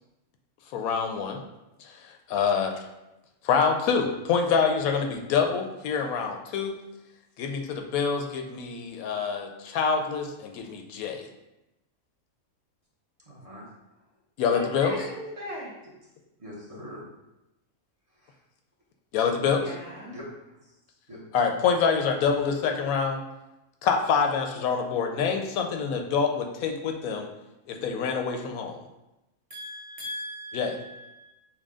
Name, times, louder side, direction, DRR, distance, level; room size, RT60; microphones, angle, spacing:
voice 1, 0.7-1.4 1.8-1.9 2.3-2.7 3.4-6.8 7.4-11.3 14.4-15.0 19.1-19.6 21.3-23.2 23.8-27.3 27.7-28.8 30.5-30.7, left 6 dB, 80° left, 4 dB, 1.0 m, -26 dB
voice 2, 13.3-13.6 16.4-17.0 18.2-18.3 20.1-20.3 21.1-21.2 29.5-30.4, left 1 dB, 30° right, -6 dB, 0.8 m, -43 dB
voice 3, 14.4-15.7 19.5-20.2 30.0-31.3, equal, 55° right, -4 dB, 1.5 m, -38 dB
6.1 x 2.2 x 3.6 m, 0.95 s
omnidirectional pair, 1.5 m